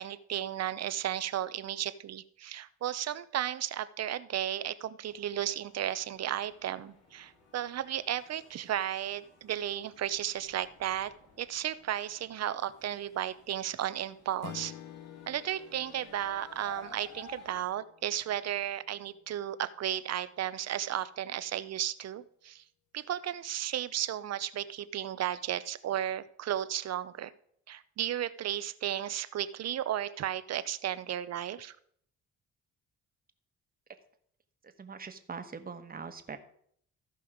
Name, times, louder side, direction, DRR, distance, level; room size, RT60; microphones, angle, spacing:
voice 1, 0.0-11.1 11.4-14.7 15.3-22.6 22.9-27.3 27.7-31.8, right 11 dB, 55° right, 15 dB, 0.7 m, -34 dB
sound 1, 5.1-17.7, left 4 dB, 55° left, 3.2 m, -56 dB
Strum, 14.4-19.0, left 10 dB, 75° left, 0.9 m, -50 dB
voice 2, 34.8-36.4, right 5 dB, 30° right, 7 dB, 1.3 m, -42 dB
14.5 x 5.4 x 5.0 m, 0.64 s
cardioid pair, 90°, 30 cm